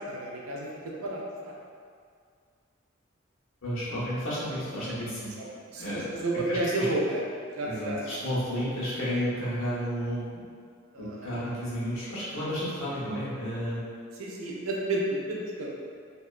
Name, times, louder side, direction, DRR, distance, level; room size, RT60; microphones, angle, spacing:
voice 1, 0.0-1.5 4.8-4.9 5.4-5.5 5.7-7.2 7.5-8.2 10.9-11.4 14.2-15.7, right 2 dB, 90° right, -2 dB, 0.5 m, -31 dB
voice 2, 3.6-5.3 5.8-6.2 6.5-6.9 7.7-10.4 11.0-13.8, equal, 80° left, -9 dB, 0.9 m, -32 dB
2.7 x 2.2 x 2.4 m, 2.1 s
head